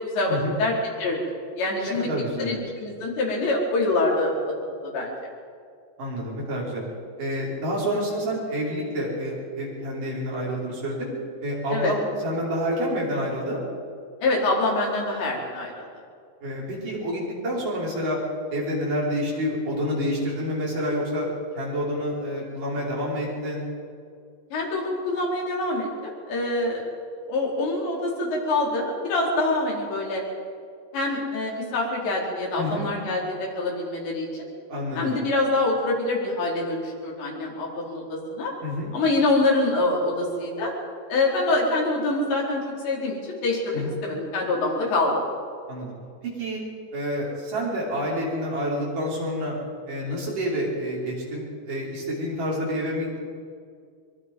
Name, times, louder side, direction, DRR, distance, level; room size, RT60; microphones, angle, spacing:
voice 1, 0.1-1.2 1.6-2.0 2.4-4.3 4.8-5.1 11.7-11.9 14.2-15.9 24.5-26.9 27.3-30.2 30.9-34.5 34.9-38.5 38.9-40.7 41.1-45.2, left 2 dB, 80° left, -3 dB, 6.6 m, -25 dB
voice 2, 1.7-2.5 6.0-6.8 7.2-11.1 11.4-13.6 16.4-18.2 18.5-21.3 21.6-23.7 32.6-32.9 34.7-35.2 38.6-38.9 43.7-44.0 45.7-46.0 46.2-46.6 46.9-49.6 49.9-53.3, equal, 50° right, -5 dB, 6.8 m, -28 dB
24.5 x 23.5 x 5.4 m, 2.2 s
omnidirectional pair, 5.0 m